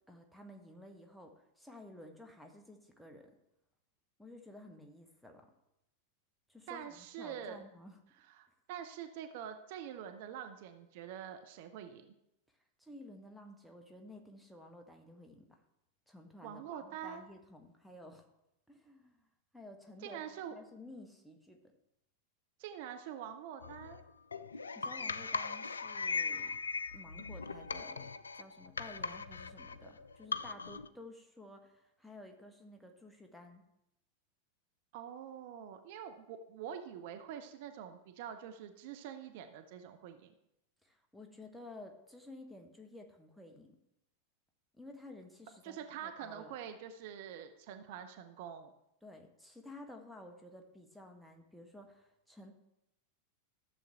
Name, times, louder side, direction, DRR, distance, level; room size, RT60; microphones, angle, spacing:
voice 1, 0.1-3.3 4.2-5.5 6.5-8.0 12.8-15.5 16.1-18.2 18.7-19.3 19.5-20.2 20.5-21.7 24.7-26.5 26.9-33.6 40.8-43.8 44.7-46.6 49.0-52.5, left 1 dB, ahead, 2 dB, 1.5 m, -53 dB
voice 2, 6.7-7.6 8.3-12.1 16.4-17.2 20.0-20.5 22.6-24.0 34.9-40.3 45.6-48.7, right 9 dB, 50° right, 7 dB, 0.8 m, -45 dB
sound 1, 23.6-30.9, left 4 dB, 75° left, 0.4 m, -39 dB
13.5 x 7.1 x 3.6 m, 0.85 s
figure-of-eight pair, 90°, 0 cm